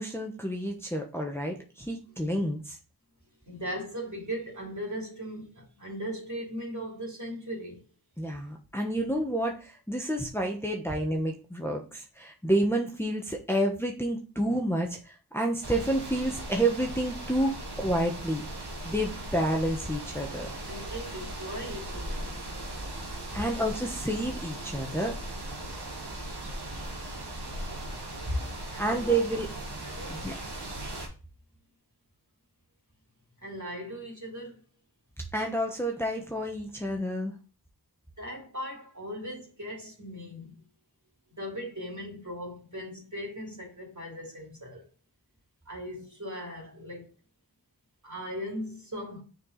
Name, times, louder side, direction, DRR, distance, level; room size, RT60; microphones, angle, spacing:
voice 1, 0.0-2.8 8.2-18.4 18.8-20.5 23.3-25.2 28.8-29.5 30.1-30.3 35.3-37.3, right 1 dB, 5° left, 1.1 m, -29 dB
voice 2, 3.5-7.8 20.7-22.6 23.1-23.4 28.3-28.4 28.7-29.3 29.8-30.3 33.4-34.6 38.2-40.5 41.4-44.8 45.7-47.1 48.0-49.2, equal, 50° right, 3.1 m, -38 dB
sound 1, 15.6-31.1, right 1 dB, 90° right, 1.5 m, -38 dB
6.3 x 4.7 x 4.0 m
wide cardioid pair, 50°, 39 cm